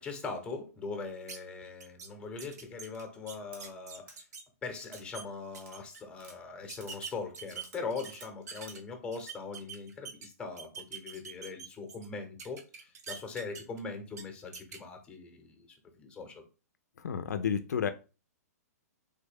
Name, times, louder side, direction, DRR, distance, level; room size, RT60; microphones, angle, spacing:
voice 1, 0.0-4.3 4.6-15.7 16.0-16.4, left 4 dB, 10° left, 0.7 m, -41 dB
sound 1, 1.3-1.4 1.8-2.1 2.4-4.4 4.8-5.2 5.5-6.0 6.7-8.8 9.1-10.3 10.6-12.1 12.4-13.8 14.1-14.2 14.5-14.8, right 6 dB, 75° right, 0.7 m, -44 dB
sound 2, 3.5-3.6 4.1-4.2 4.8-5.0 5.6-5.7 6.2-6.4 6.8-7.0 7.5-8.3 8.7-8.8, right 3 dB, 45° right, 1.0 m, -52 dB
voice 2, 17.0-17.9, left 7 dB, 90° left, 0.4 m, -31 dB
3.4 x 2.2 x 3.3 m
hypercardioid pair, 135°, 9 cm